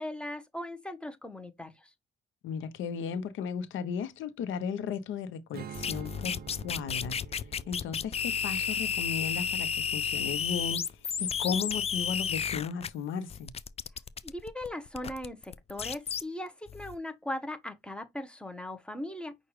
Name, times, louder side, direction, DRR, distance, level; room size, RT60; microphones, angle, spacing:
voice 1, 0.0-1.9 14.2-19.4, left 1 dB, 5° left, 0.9 m, -39 dB
voice 2, 2.4-6.4 6.6-7.2 7.7-13.5, left 6 dB, 80° left, 0.9 m, -35 dB
Strum, 5.5-10.9, right 8 dB, 50° right, 0.5 m, -49 dB
sound 1, 5.7-12.9 13.3-16.2 16.7-17.0, left 7 dB, 30° left, 0.4 m, -32 dB
5.9 x 2.4 x 3.1 m
cardioid pair, 90°, 20 cm